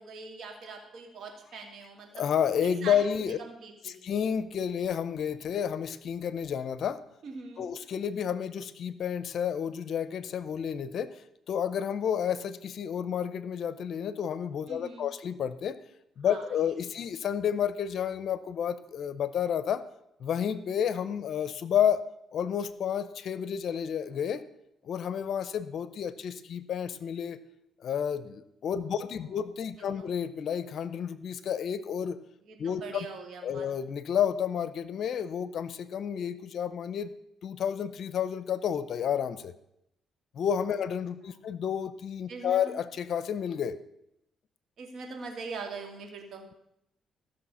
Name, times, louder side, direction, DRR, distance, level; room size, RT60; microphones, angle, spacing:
voice 1, 0.0-2.3 2.6-3.0 3.4-4.0 7.2-7.7 14.7-15.1 16.2-16.4 29.1-29.2 30.0-30.1 32.5-33.7 41.2-41.4 42.3-42.7 44.8-46.4, right 4 dB, 65° right, 3 dB, 2.7 m, -42 dB
voice 2, 2.1-3.4 3.8-7.0 7.6-15.8 16.2-19.8 20.2-22.0 22.3-24.4 24.8-27.4 27.8-32.2 32.6-33.1 33.4-37.1 37.4-39.5 40.3-43.8, left 8 dB, 65° left, 15 dB, 0.7 m, -30 dB
15.0 x 6.5 x 5.6 m, 0.81 s
cardioid pair, 90°, 0 cm